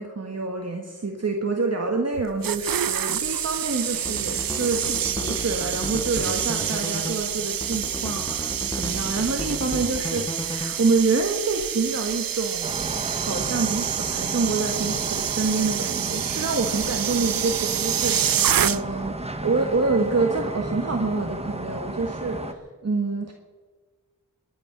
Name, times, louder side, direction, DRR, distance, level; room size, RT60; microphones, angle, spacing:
voice 1, 0.0-23.3, right 3 dB, 45° right, 2 dB, 1.6 m, -27 dB
sound 1, 2.2-19.1 19.4-19.7, right 10 dB, 80° right, 0.5 m, -28 dB
sound 2, 3.9-11.0, left 1 dB, 10° left, 0.7 m, -34 dB
sound 3, 12.6-22.5, right 1 dB, 20° right, 1.2 m, -33 dB
23.0 x 10.5 x 6.0 m, 1.4 s
wide cardioid pair, 85°, 34 cm